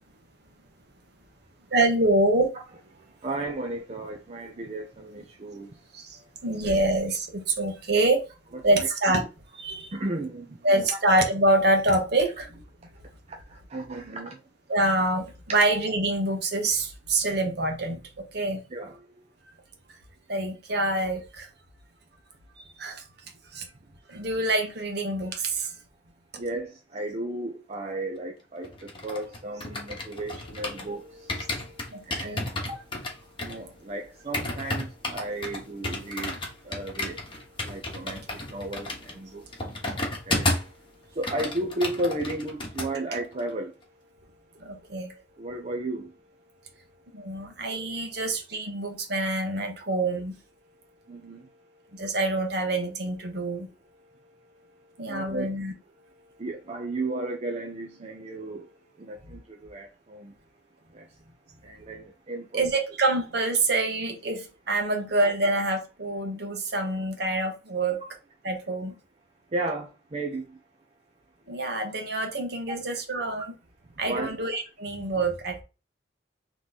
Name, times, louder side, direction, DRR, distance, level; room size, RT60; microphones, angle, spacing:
voice 1, 1.7-2.5 5.9-8.2 8.6-9.3 9.5-9.9 10.6-12.6 14.7-18.6 20.3-21.5 22.6-23.0 23.5-23.7 24.1-25.7 31.9-32.4 33.5-33.6 44.6-45.1 47.1-50.4 51.9-53.7 55.0-55.7 62.5-68.0 68.4-68.9 71.5-73.5 74.0-75.6, right 2 dB, 60° right, 1.1 m, -26 dB
voice 2, 2.9-5.9 8.8-8.9 9.9-10.9 13.3-14.4 18.7-19.0 26.4-32.8 33.4-43.7 45.4-46.1 51.1-51.5 54.0-54.3 54.6-55.5 56.2-60.4 60.9-61.1 61.6-62.6 69.5-70.6 73.4-73.5 74.0-74.4, right 2 dB, 35° right, 0.5 m, -35 dB
sound 1, 28.6-30.9 31.3-40.8 41.1-42.9 43.2-43.4, left 2 dB, 25° left, 1.1 m, -32 dB
3.7 x 3.1 x 4.0 m
head